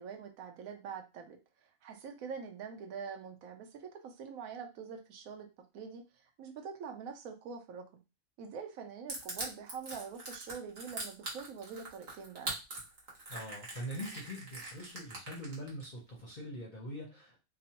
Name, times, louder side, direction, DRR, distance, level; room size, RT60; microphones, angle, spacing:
voice 1, 0.0-1.4 1.8-5.5 5.7-8.0 8.4-12.5, right 6 dB, 80° right, 4 dB, 1.0 m, -45 dB
Crushing, 9.1-15.8, right 2 dB, 50° right, 1.2 m, -42 dB
voice 2, 13.3-17.4, equal, 50° left, -2 dB, 0.6 m, -43 dB
2.9 x 2.0 x 2.8 m, 0.27 s
omnidirectional pair, 1.5 m